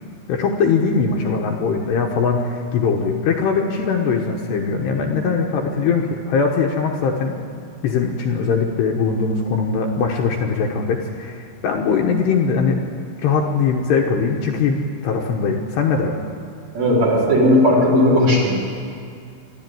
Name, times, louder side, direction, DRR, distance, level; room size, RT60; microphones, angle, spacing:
voice 1, 0.3-7.3 7.8-12.8 13.2-14.8 15.0-16.2, left 5 dB, 70° left, 1 dB, 3.0 m, -21 dB
voice 2, 16.7-18.5, left 1 dB, 35° right, -3 dB, 5.6 m, -15 dB
25.0 x 12.5 x 9.4 m, 2.3 s
omnidirectional pair, 5.6 m